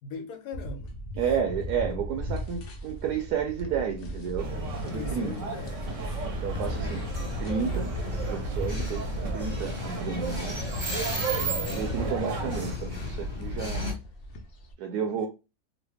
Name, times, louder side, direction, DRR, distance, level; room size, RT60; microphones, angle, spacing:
voice 1, 0.0-1.0 1.2-1.3 4.9-6.2 6.5-7.0 11.3-11.9 15.2-15.3, left 4 dB, 75° left, 1.3 m, -40 dB
sound 1, 0.5-14.7, equal, 60° left, 0.6 m, -37 dB
voice 2, 1.2-4.5 4.8-5.3 6.4-7.0 7.4-7.9 8.3-9.0 9.3-10.8 11.7-13.8 14.8-15.3, right 7 dB, 80° right, 1.1 m, -31 dB
sound 2, 4.4-12.8, right 4 dB, 60° right, 1.0 m, -35 dB
sound 3, 6.6-13.9, left 2 dB, 20° left, 1.0 m, -35 dB
3.0 x 2.4 x 3.3 m
omnidirectional pair, 1.7 m